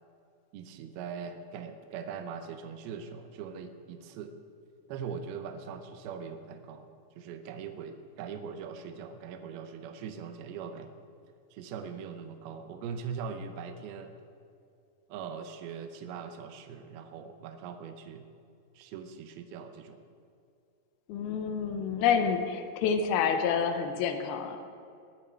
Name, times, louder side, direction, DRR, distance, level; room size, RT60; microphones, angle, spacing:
voice 1, 0.5-4.3 4.9-6.9 7.2-10.9 11.5-14.1 15.1-18.3 18.7-20.0, right 6 dB, 80° right, 7 dB, 2.7 m, -41 dB
voice 2, 21.1-24.6, left 7 dB, 80° left, 6 dB, 2.8 m, -28 dB
20.5 x 9.5 x 4.5 m, 2.4 s
omnidirectional pair, 4.6 m